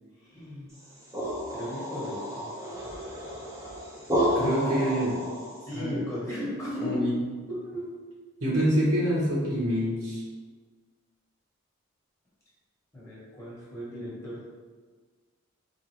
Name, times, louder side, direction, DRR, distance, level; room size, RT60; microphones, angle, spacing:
voice 1, 0.2-0.7 1.5-2.5 5.6-7.1 7.6-7.9 12.9-14.5, left 1 dB, 15° left, -8 dB, 1.1 m, -35 dB
sound 1, 0.8-5.7, equal, 15° right, 0.6 m, -31 dB
voice 2, 4.3-5.2 5.7-6.0 6.8-7.1 8.4-10.2, equal, 90° right, -6 dB, 1.4 m, -26 dB
3.5 x 2.5 x 4.5 m, 1.5 s
head